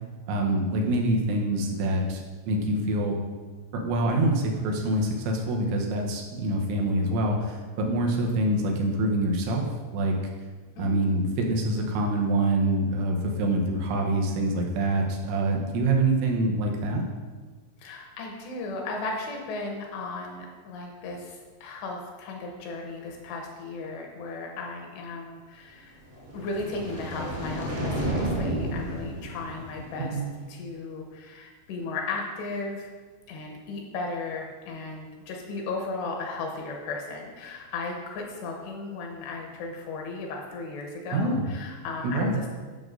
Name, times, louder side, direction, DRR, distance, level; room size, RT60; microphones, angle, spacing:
voice 1, 0.3-3.2 3.7-9.7 9.9-10.2 10.8-17.0 30.1-30.3 41.1-41.5 42.0-42.4, right 1 dB, 85° right, 0 dB, 3.2 m, -25 dB
voice 2, 10.8-11.4 17.8-30.2 30.5-32.9 33.3-42.5, left 3 dB, 80° left, 0 dB, 2.8 m, -36 dB
sound 1, 26.1-30.4, right 1 dB, 40° right, 0.7 m, -32 dB
11.0 x 6.2 x 2.6 m, 1.4 s
omnidirectional pair, 5.2 m